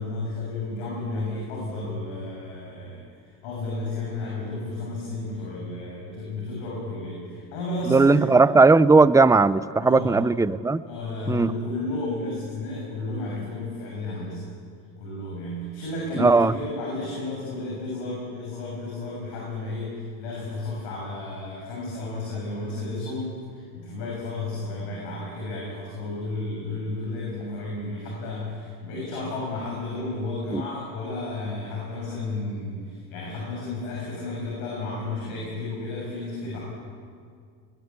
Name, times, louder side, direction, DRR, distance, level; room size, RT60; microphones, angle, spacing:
voice 1, 0.0-8.3 9.8-10.1 10.9-14.4 15.0-36.6, left 2 dB, 75° left, -3 dB, 6.8 m, -32 dB
voice 2, 7.9-10.8 11.3-11.5 16.2-16.5 30.5-30.6, right 3 dB, 5° right, 16 dB, 0.6 m, -17 dB
21.5 x 20.5 x 8.3 m, 2.1 s
supercardioid pair, 80°, 48 cm